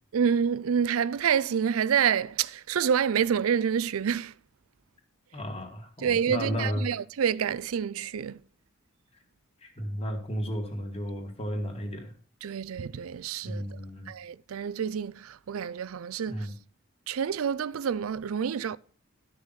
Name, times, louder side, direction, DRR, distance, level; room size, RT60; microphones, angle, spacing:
voice 1, 0.1-4.3 6.0-8.4 12.4-13.6 14.1-16.5 17.1-18.8, right 7 dB, 85° right, 0.4 m, -28 dB
voice 2, 5.3-6.9 9.6-12.1 13.4-14.1 16.3-16.5, equal, 30° left, 2.3 m, -33 dB
12.5 x 6.4 x 5.6 m
head